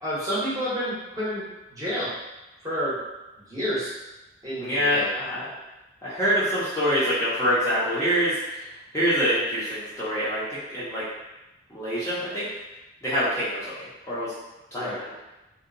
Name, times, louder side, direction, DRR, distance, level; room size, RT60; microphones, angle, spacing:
voice 1, 0.0-2.1 2.6-3.0 3.4-3.9 4.4-5.1 14.7-15.0, equal, 20° right, -9 dB, 0.8 m, -29 dB
voice 2, 4.6-5.4 6.0-8.7 8.9-11.1 11.7-12.5 13.0-14.3 14.7-15.1, equal, 15° left, -11 dB, 0.5 m, -25 dB
2.7 x 2.1 x 2.5 m, 1.0 s
head